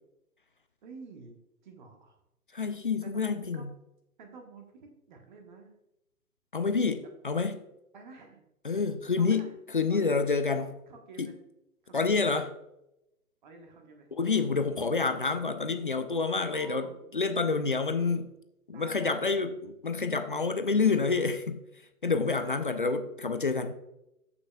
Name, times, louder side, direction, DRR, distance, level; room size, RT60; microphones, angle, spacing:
voice 1, 0.8-2.2 3.0-3.7 4.2-5.7 7.9-8.5 9.2-9.5 9.9-10.2 10.5-11.3 11.8-12.2 13.4-14.1 16.5-17.7 18.7-19.4 22.3-22.9, right 3 dB, 30° right, 4 dB, 1.2 m, -49 dB
voice 2, 2.5-3.7 6.5-7.6 8.6-10.7 11.2-11.3 11.9-12.5 14.2-18.3 18.7-21.6 22.0-23.7, left 4 dB, 35° left, 8 dB, 0.4 m, -28 dB
14.0 x 5.9 x 2.3 m, 0.87 s
figure-of-eight pair, 135°, 46 cm